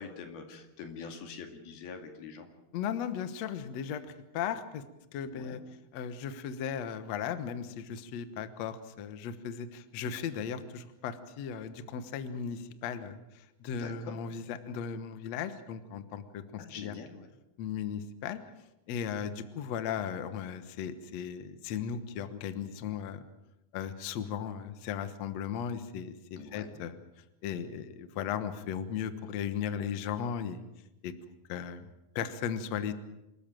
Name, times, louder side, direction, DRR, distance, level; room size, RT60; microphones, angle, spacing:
voice 1, 0.0-2.5 5.2-5.6 13.7-14.2 16.6-17.3 26.4-26.8, left 5 dB, 85° left, 5 dB, 4.2 m, -44 dB
voice 2, 2.7-4.0 4.3-4.8 5.1-5.6 5.9-13.2 13.6-16.9 17.6-18.4 18.9-23.2 23.7-27.0 27.4-30.6 31.0-31.1 31.5-31.9 32.2-32.9, left 8 dB, 60° left, 11 dB, 2.0 m, -36 dB
26.0 x 14.0 x 9.0 m, 0.94 s
omnidirectional pair, 4.2 m